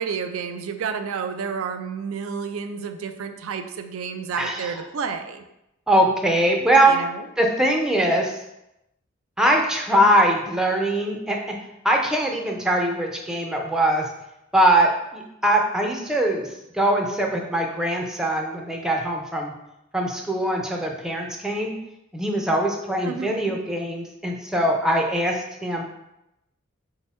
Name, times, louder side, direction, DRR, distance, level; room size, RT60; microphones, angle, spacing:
voice 1, 0.0-5.4 6.9-7.3 23.0-23.5, right 6 dB, 75° right, 8 dB, 0.4 m, -30 dB
voice 2, 4.4-4.7 5.9-6.9 7.4-8.3 9.4-11.4 11.8-14.1 14.5-16.5 16.7-19.5 19.9-21.7 22.1-25.8, right 1 dB, 5° right, 1 dB, 0.4 m, -22 dB
4.2 x 2.0 x 4.2 m, 0.87 s
head